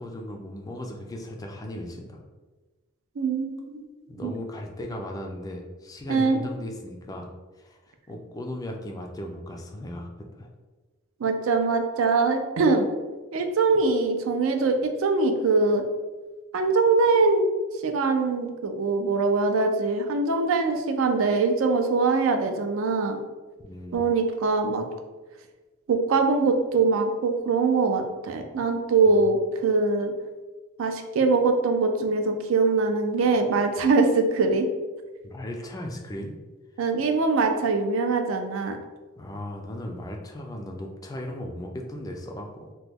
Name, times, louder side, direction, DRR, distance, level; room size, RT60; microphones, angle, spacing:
voice 1, 0.0-2.2 4.1-7.3 7.5-10.5 13.7-13.8 23.6-24.0 35.2-36.4 39.2-42.7, left 1 dB, 15° left, 1 dB, 0.3 m, -37 dB
voice 2, 3.2-3.9 4.2-4.3 6.1-6.4 11.2-12.9 13.3-15.8 16.5-17.5 17.8-23.2 23.9-24.8 25.9-30.1 30.8-34.7 36.8-38.8, right 3 dB, 65° right, 5 dB, 0.4 m, -23 dB
2.9 x 2.2 x 3.4 m, 1.2 s
head